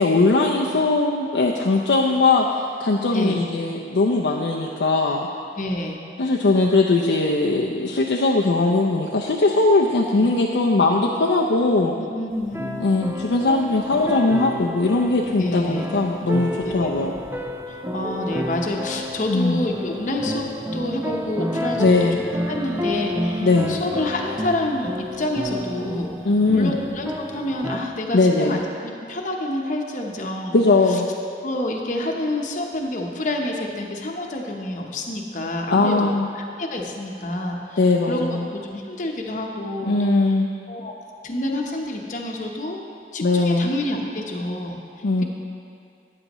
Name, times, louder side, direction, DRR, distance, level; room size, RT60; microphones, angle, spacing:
voice 1, 0.0-5.3 6.2-12.0 12.8-17.1 19.3-19.6 21.8-22.2 23.4-23.8 26.2-26.7 28.1-28.6 30.5-31.1 35.7-36.3 37.8-38.4 39.9-40.5 43.2-43.7 45.0-45.2, left 3 dB, 80° left, -1 dB, 0.6 m, -20 dB
voice 2, 5.5-6.0 10.1-10.3 12.0-13.0 15.3-15.9 16.6-17.1 17.7-22.1 22.5-26.1 26.5-30.6 30.9-31.0 31.4-40.1 40.7-40.9 41.2-42.8 43.1-44.8, left 1 dB, 45° left, 1 dB, 0.9 m, -28 dB
sound 1, 12.4-27.8, equal, 15° right, 0.5 m, -30 dB
13.0 x 9.8 x 3.0 m, 2.4 s
head